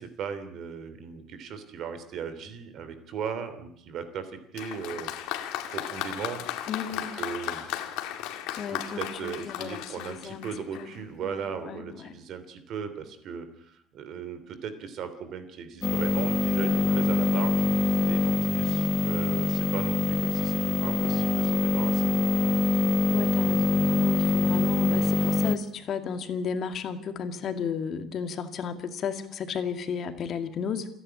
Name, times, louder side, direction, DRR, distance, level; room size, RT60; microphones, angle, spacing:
voice 1, 0.0-5.4 5.7-6.4 6.9-7.7 8.7-17.7 18.1-22.1, right 6 dB, 50° right, 11 dB, 3.1 m, -37 dB
Applause, 4.5-11.0, left 12 dB, 85° left, 2.5 m, -35 dB
voice 2, 6.7-7.2 8.6-10.5 10.8-10.9 11.2-12.2 16.7-17.2 22.7-22.8 23.1-30.9, left 6 dB, 45° left, 8 dB, 2.2 m, -34 dB
sound 1, 15.8-25.6, left 3 dB, 15° left, 1.3 m, -24 dB
28.5 x 11.0 x 9.9 m, 0.69 s
cardioid pair, 150°, 0 cm